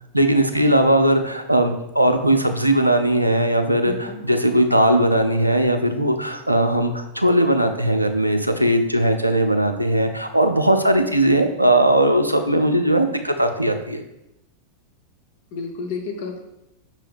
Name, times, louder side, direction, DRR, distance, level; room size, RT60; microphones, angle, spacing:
voice 1, 0.1-14.0, right 1 dB, 85° right, 6 dB, 0.3 m, -19 dB
voice 2, 3.8-4.2 15.5-16.4, left 4 dB, 50° left, 3 dB, 0.7 m, -31 dB
5.3 x 2.7 x 3.4 m, 0.89 s
figure-of-eight pair, 90°, 0 cm